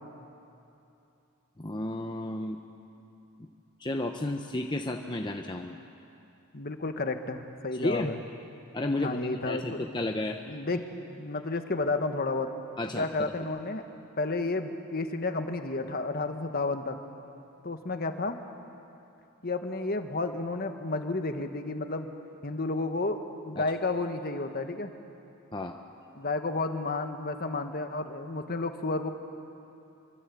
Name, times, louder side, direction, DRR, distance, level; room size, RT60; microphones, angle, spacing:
voice 1, 1.6-2.6 3.8-5.8 7.7-8.1 8.7-10.4 12.8-13.3 23.6-23.7 25.5-25.7, left 2 dB, 20° left, 3 dB, 0.9 m, -32 dB
voice 2, 6.5-8.2 8.9-9.8 10.4-10.8 11.1-12.5 12.9-13.8 14.2-17.0 17.6-18.4 19.4-22.1 22.4-24.9 26.1-29.1, left 3 dB, 45° left, 7 dB, 1.5 m, -31 dB
26.0 x 24.0 x 8.5 m, 2.8 s
head